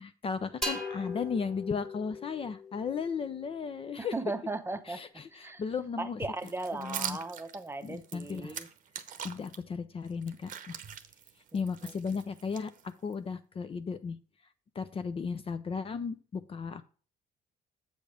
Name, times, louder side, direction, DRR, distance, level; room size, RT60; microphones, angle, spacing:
voice 1, 0.0-4.1 4.9-6.2 6.7-7.2 7.8-8.6 9.2-10.8 11.5-12.7 13.0-14.2 14.7-16.8, left 5 dB, 35° left, 12 dB, 0.5 m, -35 dB
sound 1, 0.6-4.2, left 2 dB, ahead, 1.9 m, -40 dB
voice 2, 4.0-5.0 5.3-5.6 6.0-8.7 11.5-11.9, right 3 dB, 15° right, 9 dB, 0.8 m, -37 dB
sound 2, 6.4-9.6 10.0-13.1, right 9 dB, 50° right, 0.8 m, -42 dB
7.8 x 5.2 x 5.0 m, 0.37 s
cardioid pair, 110°, 17 cm